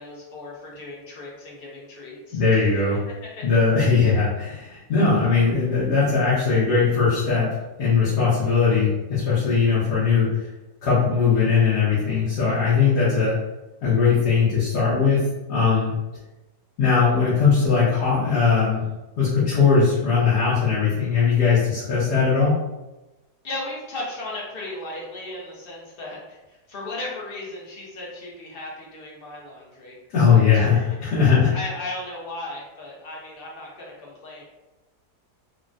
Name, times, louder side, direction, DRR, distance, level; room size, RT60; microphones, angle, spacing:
voice 1, 0.0-2.7 3.2-3.4 23.4-30.0 30.2-34.4, left 2 dB, 50° left, -4 dB, 0.7 m, -36 dB
voice 2, 2.3-3.0 3.4-7.5 7.8-10.4 10.8-13.3 13.8-15.9 16.8-18.8 19.2-22.5 30.1-31.5, left 5 dB, 80° left, -11 dB, 1.5 m, -19 dB
3.6 x 2.1 x 2.5 m, 1.0 s
omnidirectional pair, 1.7 m